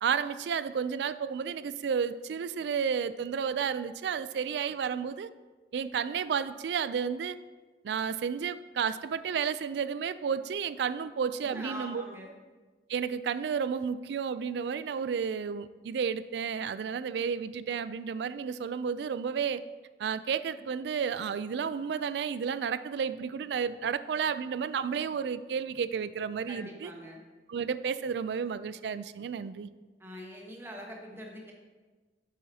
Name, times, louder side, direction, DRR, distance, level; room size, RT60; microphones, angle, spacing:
voice 1, 0.0-5.3 5.7-7.4 7.8-12.0 12.9-19.6 20.0-26.9 27.5-29.7, right 6 dB, 70° right, 14 dB, 0.3 m, -32 dB
voice 2, 11.4-12.3 26.5-27.2 30.0-31.5, equal, 15° right, -1 dB, 1.1 m, -43 dB
8.6 x 7.4 x 2.8 m, 1.3 s
head